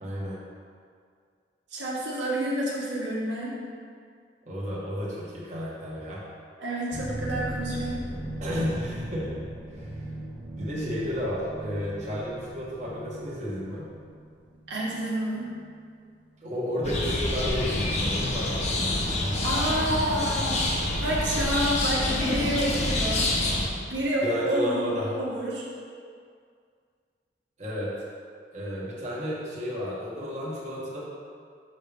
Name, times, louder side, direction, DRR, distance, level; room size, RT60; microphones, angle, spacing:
voice 1, 0.0-0.4 4.5-6.2 8.4-9.5 9.7-9.9 10.6-13.9 16.4-19.3 22.8-22.9 24.2-25.2 27.6-27.9 28.5-31.0, equal, 40° right, -7 dB, 1.2 m, -32 dB
voice 2, 1.7-3.6 6.6-8.0 14.7-15.5 19.4-23.3 23.9-25.6, equal, 85° right, -6 dB, 1.4 m, -29 dB
sound 1, 6.9-15.7, right 1 dB, 5° right, 0.7 m, -38 dB
sound 2, 16.8-23.7, left 1 dB, 40° left, 0.7 m, -27 dB
6.5 x 6.0 x 3.4 m, 2.1 s
head